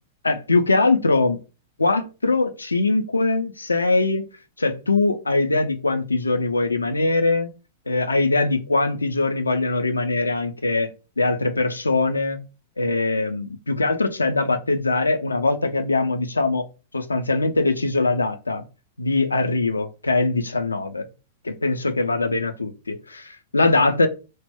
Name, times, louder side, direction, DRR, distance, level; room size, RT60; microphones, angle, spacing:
voice 1, 0.2-1.4 1.8-4.2 4.6-7.5 7.9-10.9 11.2-12.4 12.8-16.7 16.9-18.6 19.0-21.1 21.4-24.1, left 3 dB, 75° left, 0.3 m, -22 dB
2.1 x 2.1 x 3.4 m
figure-of-eight pair, 100°, 0 cm